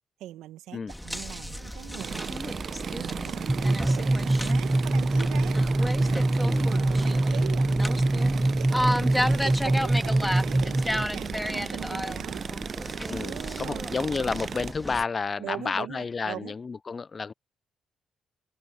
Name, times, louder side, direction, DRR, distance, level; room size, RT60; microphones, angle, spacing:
voice 1, 0.2-12.4 13.2-13.9 15.4-16.5, right 14 dB, 75° right, 1.4 m, -41 dB
sound 1, 0.9-15.0, equal, 5° left, 2.5 m, -33 dB
sound 2, 2.0-14.7, right 7 dB, 55° right, 0.7 m, -36 dB
sound 3, 3.5-11.0, right 1 dB, 15° right, 0.3 m, -24 dB
voice 2, 6.4-6.7 13.1-17.3, left 4 dB, 40° left, 0.6 m, -31 dB
hypercardioid pair, 40°, 0 cm